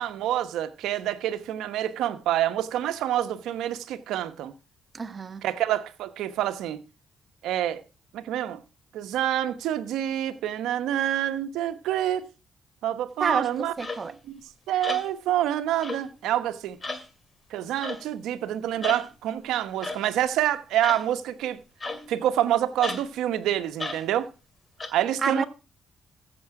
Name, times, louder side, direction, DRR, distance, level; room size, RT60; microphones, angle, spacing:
voice 1, 0.0-4.5 5.4-6.8 7.4-7.8 8.1-8.6 8.9-12.2 12.8-13.7 14.3-14.4 14.7-16.8 17.5-21.6 22.1-24.3 24.9-25.4, right 12 dB, 85° right, 1.0 m, -27 dB
voice 2, 4.9-5.4 13.2-13.5 13.8-14.1 25.2-25.5, right 5 dB, 35° right, 1.1 m, -28 dB
sound 1, 13.8-14.1 14.8-15.1 15.8-16.1 16.8-17.1 17.8-18.1 18.8-19.1 19.8-20.0 20.8-21.1 21.8-22.2 22.8-23.1 23.8-24.0 24.8-24.9, left 3 dB, 25° left, 2.4 m, -34 dB
15.0 x 6.8 x 4.8 m
cardioid pair, 90°, 0 cm